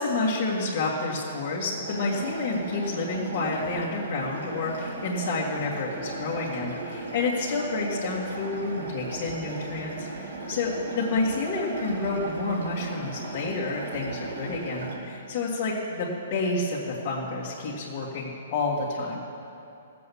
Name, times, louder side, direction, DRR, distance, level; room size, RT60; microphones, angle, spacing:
voice 1, 0.0-19.2, left 3 dB, 35° left, -7 dB, 1.9 m, -29 dB
sound 1, 1.8-15.0, right 2 dB, 85° right, 3.2 m, -37 dB
17.0 x 7.7 x 7.0 m, 2.8 s
hypercardioid pair, 170°, 0 cm